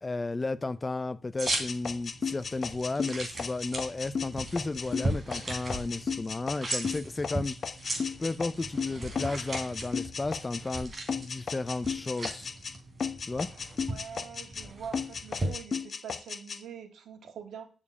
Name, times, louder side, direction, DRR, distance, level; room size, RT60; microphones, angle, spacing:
voice 1, 0.0-7.6 8.2-12.5 13.2-13.5, left 3 dB, 20° left, 0.5 m, -33 dB
sound 1, 1.4-15.5, right 1 dB, 25° right, 3.4 m, -38 dB
sound 2, 1.5-10.8 11.1-12.7 13.0-14.7 14.9-16.6, left 6 dB, 45° left, 0.8 m, -35 dB
voice 2, 13.9-17.7, right 7 dB, 85° right, 2.0 m, -44 dB
7.5 x 7.0 x 8.3 m
wide cardioid pair, 135°, 0 cm